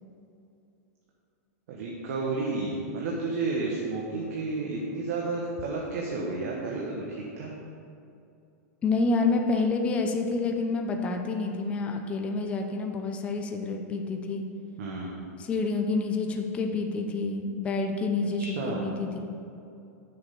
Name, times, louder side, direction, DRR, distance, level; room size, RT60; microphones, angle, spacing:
voice 1, 1.7-7.5 14.8-15.1 18.4-18.8, right 3 dB, 55° right, -3 dB, 1.4 m, -31 dB
voice 2, 8.8-14.4 15.4-19.2, left 3 dB, 15° left, 4 dB, 0.5 m, -28 dB
6.8 x 6.4 x 7.3 m, 2.7 s
supercardioid pair, 165°, 9 cm